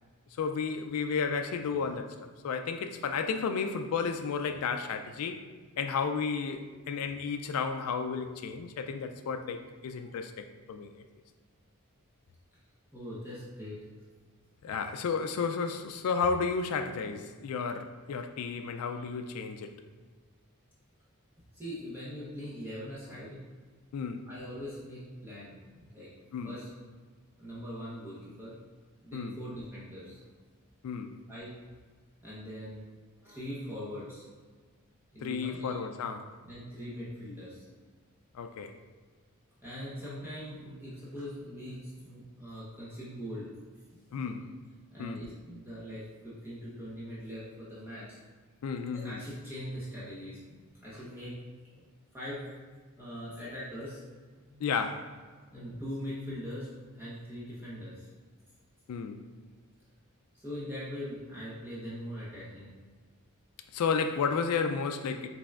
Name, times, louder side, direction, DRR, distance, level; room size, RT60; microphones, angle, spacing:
voice 1, 0.4-2.2 2.4-5.4 5.8-10.9 14.6-19.8 23.9-24.3 26.3-26.5 29.1-29.4 30.8-31.1 35.2-36.4 38.3-38.8 44.1-44.4 45.0-45.2 48.6-49.2 54.6-55.2 58.9-59.3 63.7-65.3, left 5 dB, 75° left, 0.3 m, -32 dB
voice 2, 12.9-13.8 21.5-23.4 24.2-26.1 26.4-26.7 27.4-28.5 29.0-30.2 31.3-31.6 32.2-32.9 33.2-34.2 35.1-35.8 36.4-37.7 39.6-43.5 43.9-44.2 44.9-48.2 48.9-51.4 51.7-51.8 52.1-52.4 53.0-54.0 54.5-54.6 55.5-56.7 56.9-58.1 60.3-62.7, equal, 10° right, 0.8 m, -41 dB
5.0 x 3.4 x 2.3 m
head